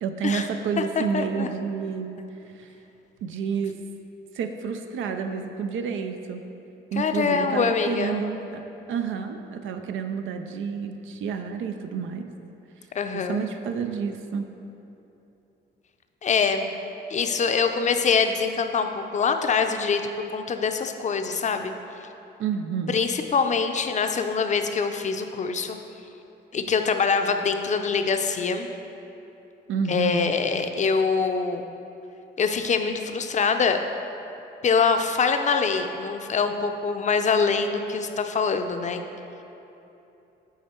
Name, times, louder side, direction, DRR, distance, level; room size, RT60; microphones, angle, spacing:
voice 1, 0.0-2.2 2.5-2.7 3.2-3.8 4.3-6.4 6.9-8.6 8.9-12.3 13.1-14.5 22.4-23.0 29.7-30.3, right 6 dB, 80° right, 6 dB, 0.5 m, -29 dB
voice 2, 0.8-1.5 7.0-8.2 12.9-13.4 16.2-16.7 17.1-20.1 20.3-21.7 22.9-25.8 26.5-28.7 29.9-31.6 32.4-33.8 34.6-39.0, left 5 dB, 35° left, 6 dB, 0.5 m, -24 dB
8.4 x 4.5 x 4.4 m, 2.9 s
cardioid pair, 90°, 20 cm